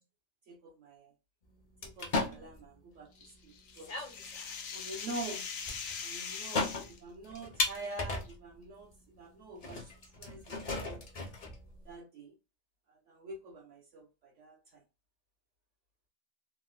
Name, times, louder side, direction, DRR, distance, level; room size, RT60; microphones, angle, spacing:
voice 1, 0.5-1.1 1.8-3.1 3.4-4.3 4.7-5.5 6.0-9.9 10.2-11.0 11.8-12.4 12.9-14.6, right 2 dB, 70° right, -2 dB, 1.0 m, -46 dB
sound 1, 1.8-2.6 3.5-3.6 3.7-4.6 5.7-6.0 6.3-8.5 8.9-9.0 9.6-11.9, left 2 dB, 45° left, 0.5 m, -36 dB
sound 2, 3.2-7.0, left 6 dB, 85° left, 1.1 m, -41 dB
3.5 x 2.1 x 2.3 m, 0.29 s
omnidirectional pair, 1.4 m